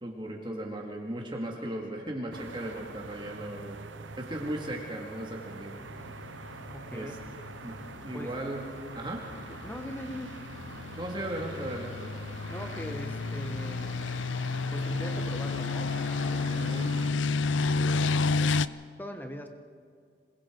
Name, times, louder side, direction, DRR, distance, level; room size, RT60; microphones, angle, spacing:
voice 1, 0.0-3.8 4.2-5.8 6.9-7.1 7.6-7.8 8.0-8.6 8.9-9.2 11.0-12.1 16.6-16.9, right 1 dB, 25° right, -1 dB, 2.4 m, -36 dB
sound 1, 2.3-17.1, right 4 dB, 90° right, 0.9 m, -45 dB
sound 2, 5.7-18.7, left 4 dB, 85° left, 0.5 m, -31 dB
voice 2, 6.7-7.1 8.1-8.3 9.5-10.4 12.5-14.1 14.7-16.8 17.6-18.6 19.0-19.5, equal, 10° left, 6 dB, 1.3 m, -41 dB
27.0 x 20.5 x 4.7 m, 2.2 s
head